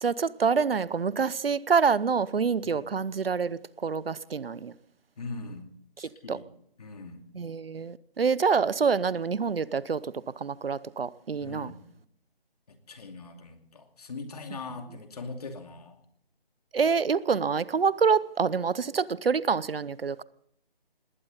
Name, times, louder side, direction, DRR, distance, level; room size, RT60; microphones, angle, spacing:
voice 1, 0.0-4.7 6.3-6.4 7.3-10.0 10.4-11.7 16.7-20.2, right 5 dB, 70° right, 0.8 m, -26 dB
voice 2, 5.2-5.7 6.0-6.4 6.8-7.2 11.4-11.8 12.7-16.0, left 3 dB, 40° left, 2.6 m, -41 dB
20.0 x 17.0 x 4.0 m
figure-of-eight pair, 170°, 30 cm